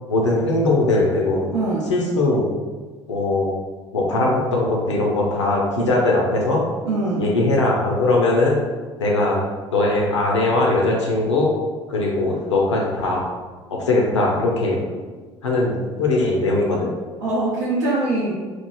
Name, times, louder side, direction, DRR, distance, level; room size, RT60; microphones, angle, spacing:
voice 1, 0.1-1.5 1.9-2.4 3.1-3.6 3.9-6.6 7.2-8.6 9.0-9.4 9.7-11.5 11.9-13.2 13.7-14.9 15.4-16.9, left 2 dB, 85° left, -2 dB, 0.5 m, -20 dB
voice 2, 1.5-1.9 6.8-7.3 14.9-15.1 17.2-18.3, right 2 dB, 75° right, -8 dB, 0.6 m, -23 dB
2.9 x 2.4 x 2.2 m, 1.4 s
figure-of-eight pair, 60°, 15 cm